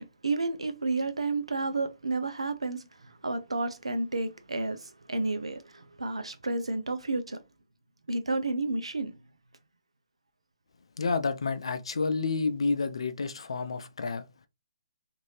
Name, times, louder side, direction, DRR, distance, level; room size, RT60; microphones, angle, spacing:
voice 1, 0.0-7.4 8.1-9.2, right 3 dB, 90° right, 0.6 m, -31 dB
voice 2, 11.0-14.5, left 4 dB, 70° left, 0.4 m, -30 dB
2.6 x 2.6 x 3.1 m
figure-of-eight pair, 140°, 3 cm